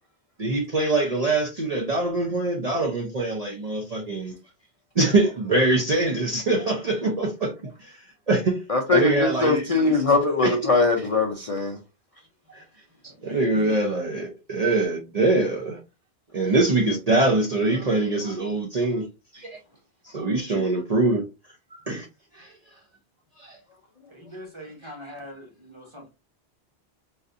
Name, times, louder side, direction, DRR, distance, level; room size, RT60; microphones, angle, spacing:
voice 1, 0.4-4.3 5.0-7.5 7.8-7.9 8.3-8.6 8.9-9.9 10.4-10.6 12.5-12.6 13.2-15.8 16.3-19.1 19.4-19.6 20.1-21.2 21.7-22.1 22.3-22.5 23.4-23.6 24.8-24.9, right 2 dB, 45° right, 0.7 m, -23 dB
voice 2, 8.7-11.8 19.3-19.5, left 3 dB, 45° left, 0.5 m, -22 dB
voice 3, 13.2-13.8 24.1-26.1, equal, 25° right, 1.2 m, -41 dB
4.2 x 2.5 x 2.5 m
omnidirectional pair, 1.1 m